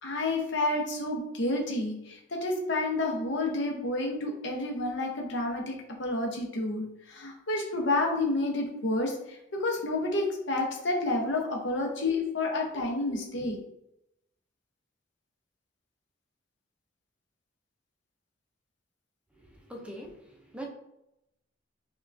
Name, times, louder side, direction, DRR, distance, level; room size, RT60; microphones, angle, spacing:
voice 1, 0.0-13.6, left 2 dB, 70° left, 1 dB, 0.8 m, -30 dB
voice 2, 19.3-20.7, right 1 dB, 5° right, 0 dB, 0.5 m, -43 dB
5.4 x 2.3 x 2.5 m, 0.85 s
head